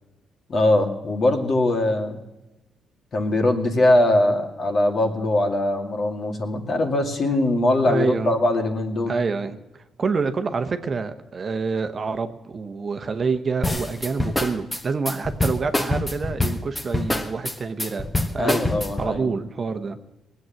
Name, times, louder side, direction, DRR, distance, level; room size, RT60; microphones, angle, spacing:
voice 1, 0.5-2.2 3.1-9.1 18.4-19.3, left 1 dB, 45° left, 3 dB, 2.4 m, -21 dB
voice 2, 7.9-8.3 9.1-18.0 18.3-18.6 19.0-20.0, right 4 dB, 40° right, 8 dB, 1.0 m, -27 dB
sound 1, 13.6-19.1, left 2 dB, 15° left, 1.3 m, -25 dB
19.0 x 8.0 x 7.6 m, 1.0 s
cardioid pair, 90°, 0 cm